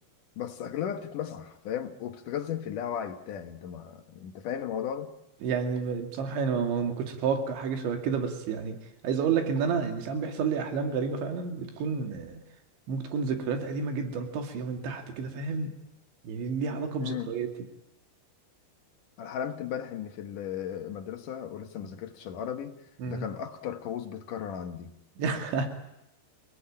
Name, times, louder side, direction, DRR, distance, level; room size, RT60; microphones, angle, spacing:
voice 1, 0.4-5.1 17.0-17.3 19.2-24.9, left 9 dB, 65° left, 2.3 m, -36 dB
voice 2, 5.4-8.8 9.0-12.4 12.9-15.8 16.2-17.5 23.0-23.2 25.2-25.7, right 5 dB, 85° right, 4.7 m, -30 dB
28.5 x 18.5 x 8.8 m
omnidirectional pair, 5.1 m